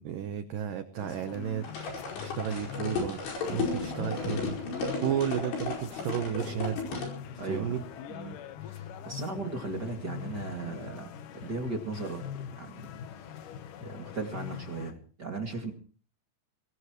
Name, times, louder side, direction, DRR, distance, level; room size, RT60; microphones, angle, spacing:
voice 1, 0.0-3.2 3.5-4.6 5.0-6.8 7.5-7.8, right 10 dB, 85° right, 9 dB, 1.9 m, -33 dB
sound 1, 1.0-14.9, left 9 dB, 80° left, 1.8 m, -43 dB
sound 2, 1.6-7.1, left 3 dB, 65° left, 7.0 m, -34 dB
voice 2, 7.4-7.7 8.1-12.2 12.6-12.9 13.2-13.4 13.8-15.7, right 3 dB, 40° right, 2 dB, 1.6 m, -37 dB
23.5 x 19.0 x 3.1 m, 0.40 s
omnidirectional pair, 5.4 m